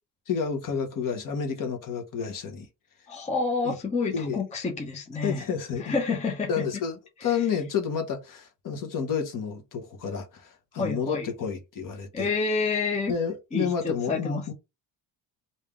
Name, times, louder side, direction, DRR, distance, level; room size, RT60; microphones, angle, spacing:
voice 1, 0.3-2.7 3.6-3.7 4.1-4.4 5.2-6.0 6.5-12.3 13.1-14.5, left 6 dB, 45° left, 1.0 m, -30 dB
voice 2, 3.1-5.4 5.8-6.5 10.8-11.3 12.1-13.1 13.5-14.5, left 4 dB, 15° left, 0.7 m, -28 dB
3.2 x 2.7 x 3.5 m
cardioid pair, 130°, 46 cm